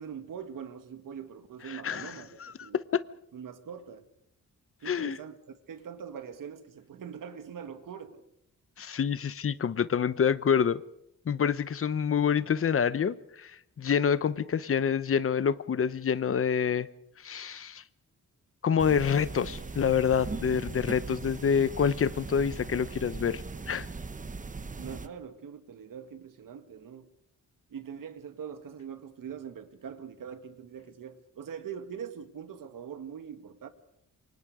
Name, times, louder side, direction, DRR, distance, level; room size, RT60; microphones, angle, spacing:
voice 1, 0.0-2.8 3.3-4.1 4.8-5.4 5.7-8.2 20.6-20.7 21.0-21.3 24.7-27.1 27.7-33.7, right 7 dB, 90° right, 9 dB, 2.2 m, -43 dB
voice 2, 1.7-2.1 2.4-3.0 4.8-5.2 8.8-10.8 11.3-16.9 17.2-17.8 18.6-23.4 23.7-23.9, left 7 dB, 45° left, 15 dB, 0.9 m, -27 dB
sound 1, 18.8-25.1, right 4 dB, 25° right, 1.1 m, -39 dB
28.0 x 24.5 x 5.0 m, 0.75 s
wide cardioid pair, 150°, 32 cm